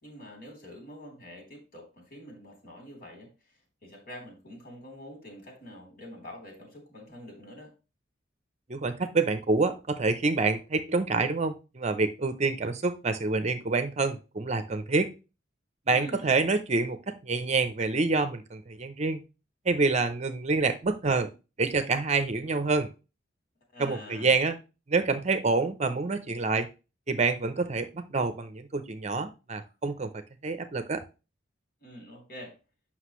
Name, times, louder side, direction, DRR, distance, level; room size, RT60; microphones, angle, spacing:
voice 1, 0.0-7.7 15.9-16.3 23.7-24.4 31.8-32.6, equal, 55° left, 3.6 m, -46 dB
voice 2, 8.7-15.1 15.9-19.2 19.7-21.3 21.6-22.9 23.8-24.6 24.9-26.7 27.1-30.1 30.4-31.0, right 3 dB, 35° right, 0.7 m, -27 dB
8.0 x 6.0 x 3.0 m
head